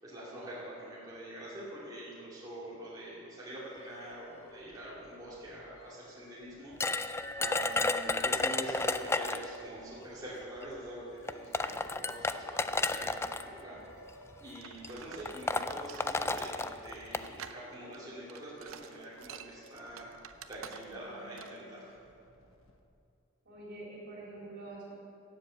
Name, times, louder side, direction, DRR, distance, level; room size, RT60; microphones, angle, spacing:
voice 1, 0.0-13.8 14.4-20.1 20.5-21.9, right 1 dB, 20° right, -8 dB, 2.6 m, -45 dB
sound 1, 3.6-23.0, left 1 dB, 70° left, 1.3 m, -59 dB
sound 2, 6.8-9.6 10.6-10.7 11.3-13.4 14.3-14.6 14.8-14.9 15.3-17.3, left 3 dB, 10° left, 0.3 m, -32 dB
sound 3, 14.6-21.1 21.4-21.6, right 7 dB, 70° right, 0.7 m, -49 dB
voice 2, 20.6-21.7 23.4-24.9, right 2 dB, 55° right, -5 dB, 4.1 m, -48 dB
17.0 x 7.8 x 6.8 m, 2.6 s
head